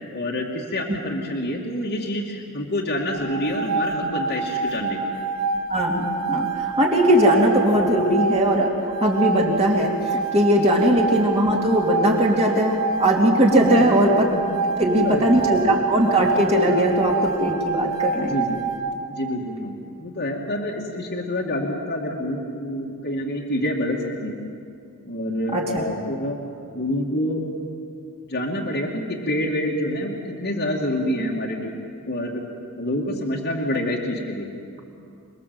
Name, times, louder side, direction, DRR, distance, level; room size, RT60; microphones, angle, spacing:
voice 1, 0.1-5.0 13.8-13.9 14.8-15.6 16.7-16.9 18.3-18.6 19.1-24.4 25.1-26.4 26.7-27.5 28.3-31.8 32.1-32.4 32.7-34.5, left 1 dB, 50° left, -3 dB, 2.4 m, -27 dB
sound 1, 3.1-19.0, right 4 dB, 85° right, 3.8 m, -27 dB
voice 2, 5.7-8.7 9.0-14.3 14.8-18.4 25.5-25.8, right 1 dB, 30° right, -1 dB, 2.7 m, -19 dB
27.0 x 21.0 x 7.8 m, 2.5 s
head